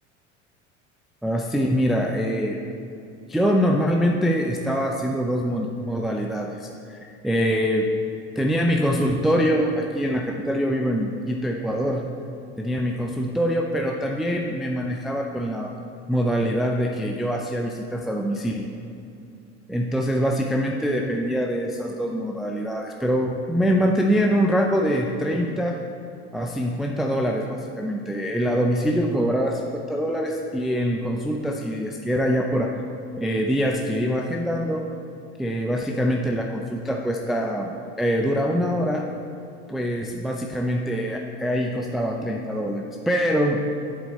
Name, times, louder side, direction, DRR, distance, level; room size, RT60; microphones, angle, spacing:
voice 1, 1.2-2.6 3.3-7.9 8.4-12.1 12.6-15.7 16.1-18.7 19.7-25.8 26.3-32.7 33.2-34.9 35.4-39.1 39.7-43.6, equal, ahead, 1 dB, 0.4 m, -24 dB
7.7 x 7.5 x 4.1 m, 2.6 s
hypercardioid pair, 75°, 37 cm